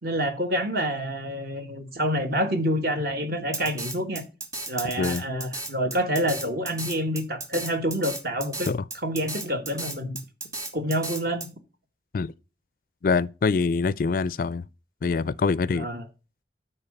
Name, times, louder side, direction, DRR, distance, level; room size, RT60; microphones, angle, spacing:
voice 1, 0.0-4.2 4.7-8.7 9.0-10.2 10.7-11.5 15.7-16.0, equal, 55° right, 1.6 m, -27 dB
Drum kit, 3.5-11.5, right 2 dB, 20° right, 1.3 m, -34 dB
voice 2, 13.0-14.7 15.0-15.9, left 4 dB, 50° left, 0.3 m, -24 dB
8.9 x 4.5 x 6.6 m
head